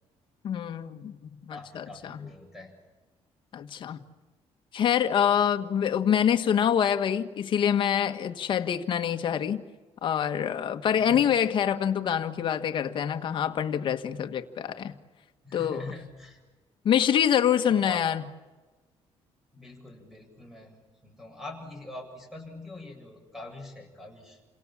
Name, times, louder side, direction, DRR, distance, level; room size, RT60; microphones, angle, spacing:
voice 1, 0.4-1.2 1.5-2.3 3.5-4.0 4.7-9.6 10.0-14.9 15.5-15.8 16.8-18.2, left 9 dB, 50° left, 1.6 m, -25 dB
voice 2, 1.5-2.8 5.3-5.4 11.0-11.3 15.4-16.4 17.7-18.1 19.5-24.4, left 2 dB, 5° right, 7.5 m, -44 dB
29.5 x 27.0 x 7.4 m
cardioid pair, 155°, 11 cm